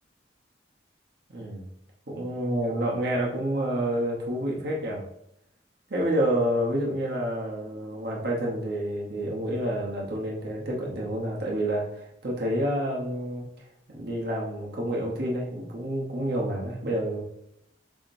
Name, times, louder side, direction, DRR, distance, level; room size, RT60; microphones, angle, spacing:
voice 1, 1.3-1.6 2.1-5.0 5.9-13.5 13.9-17.2, right 1 dB, 60° right, -3 dB, 0.9 m, -28 dB
7.0 x 2.8 x 2.6 m, 0.77 s
head